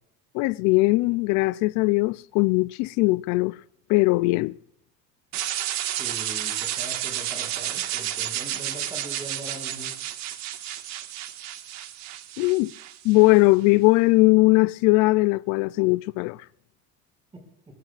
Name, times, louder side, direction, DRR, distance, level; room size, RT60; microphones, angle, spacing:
voice 1, 0.3-3.6 3.9-4.5 12.4-12.7 13.0-16.4, left 23 dB, 75° left, 0.4 m, -20 dB
sound 1, 5.3-13.4, right 13 dB, 65° right, 1.6 m, -31 dB
voice 2, 6.0-9.9 17.3-17.4, right 1 dB, 20° right, 6.1 m, -41 dB
21.0 x 21.0 x 2.5 m
cardioid pair, 110°, 29 cm